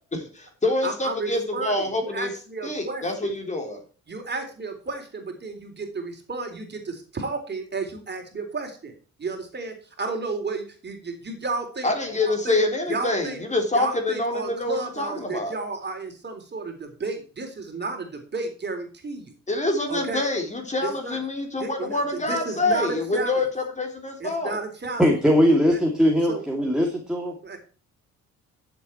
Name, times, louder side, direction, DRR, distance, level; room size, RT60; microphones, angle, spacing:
voice 1, 0.0-2.3 2.6-3.8 11.8-15.5 19.5-24.6, left 2 dB, 25° left, 4 dB, 3.5 m, -26 dB
voice 2, 0.8-3.3 4.1-8.9 9.2-11.9 12.2-12.6 12.9-13.4 13.7-19.3 19.9-20.2 20.8-21.2 21.6-23.4 24.2-25.1 25.7-25.8 26.3-26.4 27.4-27.6, right 3 dB, 35° right, 5 dB, 3.6 m, -32 dB
voice 3, 25.0-27.3, equal, 5° right, 2 dB, 2.6 m, -20 dB
11.5 x 7.6 x 4.5 m, 0.38 s
cardioid pair, 90°, 30 cm